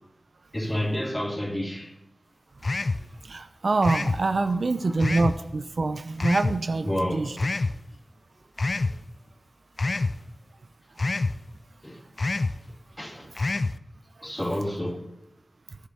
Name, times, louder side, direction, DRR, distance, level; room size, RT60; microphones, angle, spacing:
voice 1, 0.5-2.0 4.4-5.1 6.8-7.7 11.8-12.0 13.0-13.3 14.2-15.0, left 1 dB, 20° left, 2.6 m, -31 dB
sound 1, 2.6-3.1 3.8-4.2 5.0-5.4 6.2-6.6 7.4-7.7 8.6-9.0 9.8-10.2 11.0-11.4 12.2-12.6 13.4-13.8, left 3 dB, 70° left, 0.4 m, -26 dB
voice 2, 3.2-7.3 14.2-14.3, right 3 dB, 85° right, 0.7 m, -25 dB
11.5 x 6.6 x 6.7 m
wide cardioid pair, 50°, 0 cm